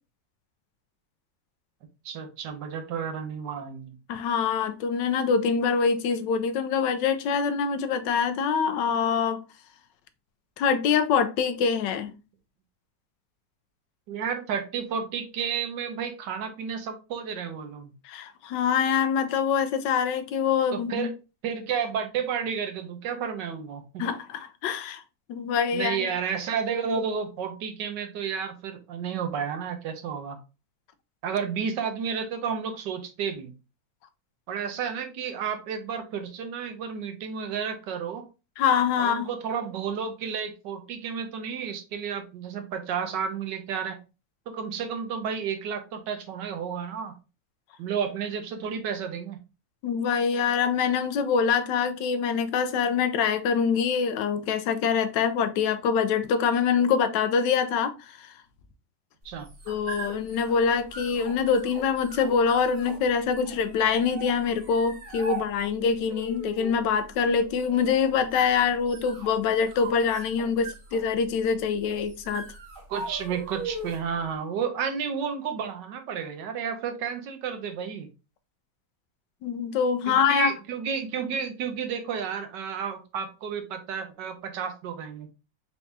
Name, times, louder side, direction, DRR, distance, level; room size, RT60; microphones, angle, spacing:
voice 1, 2.0-4.0 14.1-17.9 20.7-21.1 21.4-24.0 25.7-30.4 31.2-33.5 34.5-38.3 39.0-44.0 44.5-47.1 47.8-49.4 59.2-59.5 72.9-78.1 80.1-85.3, right 7 dB, 75° right, 1.4 m, -31 dB
voice 2, 4.1-9.4 10.6-12.1 18.0-21.1 24.0-25.0 25.3-26.1 38.6-39.3 49.8-58.3 59.7-72.5 79.4-80.5, left 6 dB, 80° left, 1.2 m, -25 dB
sound 1, 59.2-74.1, right 3 dB, 35° right, 1.0 m, -40 dB
4.6 x 3.5 x 2.6 m
omnidirectional pair, 1.9 m